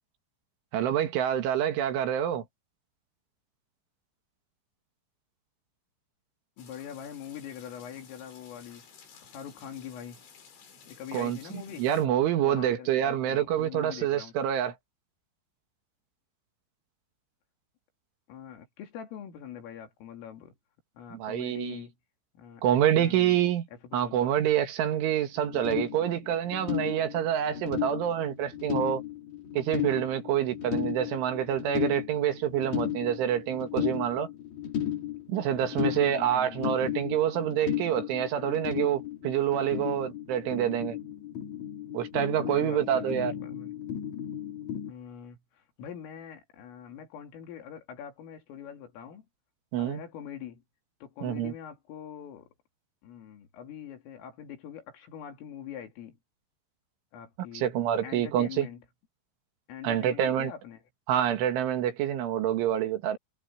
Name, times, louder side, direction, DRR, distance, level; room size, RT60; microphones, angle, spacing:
voice 1, 0.7-2.4 11.1-14.7 21.1-21.8 22.6-23.7 23.9-29.0 29.5-34.3 35.3-41.0 41.9-43.3 49.7-50.0 51.2-51.5 57.5-58.7 59.8-60.5 61.1-63.2, right 10 dB, 75° right, 4.3 m, -27 dB
voice 2, 6.6-8.9 9.3-10.2 10.9-11.9 12.4-14.4 18.3-20.5 21.0-21.9 22.4-23.4 23.9-24.4 35.7-36.8 42.5-43.7 44.9-49.3 49.8-50.6 51.0-52.5 53.0-56.2 57.1-57.7 58.0-58.8 59.7-60.8, left 9 dB, 85° left, 5.9 m, -43 dB
sound 1, 6.6-12.1, left 6 dB, 65° left, 6.7 m, -54 dB
sound 2, 25.4-44.9, left 10 dB, 40° left, 5.1 m, -35 dB
omnidirectional pair, 5.7 m